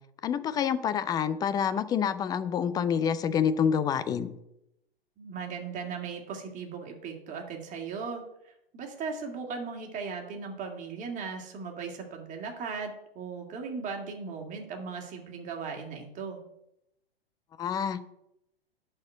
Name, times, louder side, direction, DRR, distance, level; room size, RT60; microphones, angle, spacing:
voice 1, 0.2-4.3 17.6-18.0, left 8 dB, 15° left, 14 dB, 0.4 m, -27 dB
voice 2, 5.2-16.4, right 5 dB, 25° right, 2 dB, 2.3 m, -38 dB
11.0 x 4.5 x 8.2 m, 0.84 s
figure-of-eight pair, 105°, 30 cm